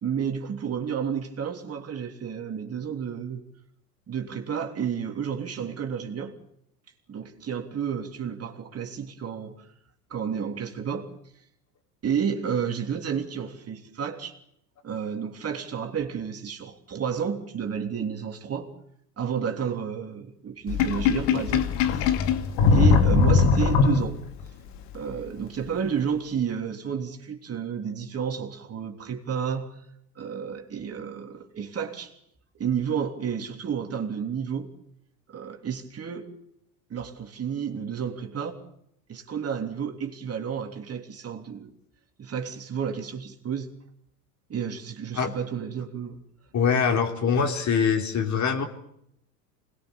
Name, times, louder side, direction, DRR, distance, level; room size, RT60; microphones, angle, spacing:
voice 1, 0.0-3.4 4.1-6.4 7.1-9.7 10.1-11.1 12.0-14.4 14.8-18.7 19.2-22.1 22.7-24.2 24.9-29.8 30.1-32.1 32.6-34.7 35.3-36.3 36.9-38.6 39.1-41.7 42.2-43.7 44.5-46.2, right 7 dB, 30° right, 3.3 m, -31 dB
Sink (filling or washing), 20.7-24.4, left 5 dB, 60° left, 2.6 m, -20 dB
voice 2, 46.5-48.6, left 6 dB, 35° left, 3.9 m, -23 dB
26.5 x 21.0 x 7.1 m
hypercardioid pair, 90°, 47 cm